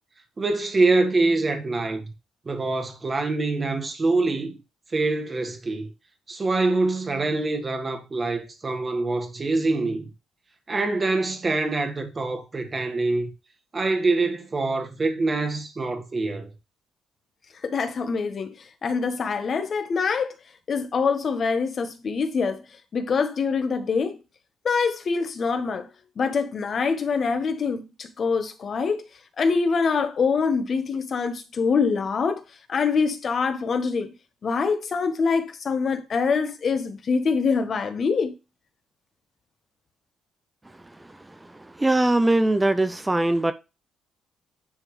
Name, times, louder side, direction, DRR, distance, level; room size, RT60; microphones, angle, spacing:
voice 1, 0.4-2.1 2.4-4.5 4.9-5.9 6.3-10.1 10.7-13.3 13.7-16.5, right 3 dB, 30° right, 1.4 m, -25 dB
voice 2, 17.6-18.6 18.8-20.3 20.7-22.6 22.9-24.2 24.6-25.9 26.2-29.0 29.4-32.4 32.7-34.1 34.4-38.3, left 5 dB, 50° left, 1.0 m, -24 dB
voice 3, 41.8-43.5, right 2 dB, 15° right, 0.4 m, -21 dB
9.8 x 3.6 x 3.1 m
cardioid pair, 90°, 0 cm